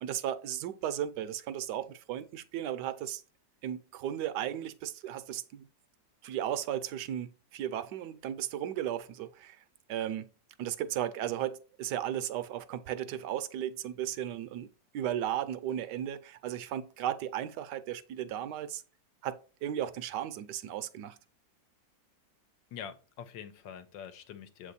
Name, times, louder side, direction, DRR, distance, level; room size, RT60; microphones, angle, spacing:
voice 1, 0.0-3.2 3.6-5.7 6.2-9.6 9.9-10.3 10.6-14.7 14.9-18.8 19.2-21.2, right 11 dB, 75° right, 1.1 m, -35 dB
voice 2, 22.7-24.7, left 8 dB, 85° left, 1.4 m, -45 dB
7.7 x 3.3 x 4.0 m
omnidirectional pair, 2.0 m